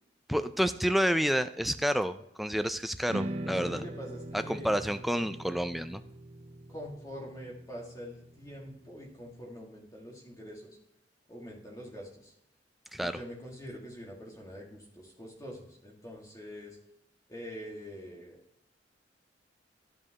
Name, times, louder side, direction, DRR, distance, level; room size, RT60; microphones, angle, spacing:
voice 1, 0.3-3.8 4.3-6.0 12.9-13.2, equal, ahead, 9 dB, 0.3 m, -29 dB
sound 1, 3.1-9.4, right 1 dB, 35° right, 0.6 m, -41 dB
voice 2, 3.5-4.7 6.7-10.8 11.3-12.3 13.0-16.8 17.3-18.4, equal, 20° left, -2 dB, 1.7 m, -45 dB
12.0 x 5.2 x 2.8 m, 0.77 s
head